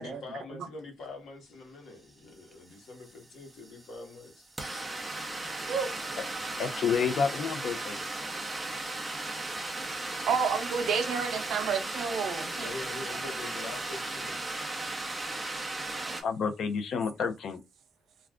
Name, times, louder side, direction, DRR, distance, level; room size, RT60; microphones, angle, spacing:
voice 1, 0.0-4.5 6.9-7.3 12.5-14.5, left 3 dB, 75° left, 1.1 m, -44 dB
sound 1, 2.5-2.6 2.8-16.2, right 2 dB, 10° right, 0.5 m, -36 dB
voice 2, 6.6-8.0 16.2-17.6, left 6 dB, 55° left, 0.5 m, -29 dB
voice 3, 10.3-12.7 16.1-16.2, right 6 dB, 65° right, 0.5 m, -30 dB
2.4 x 2.3 x 3.4 m
cardioid pair, 165°, 0 cm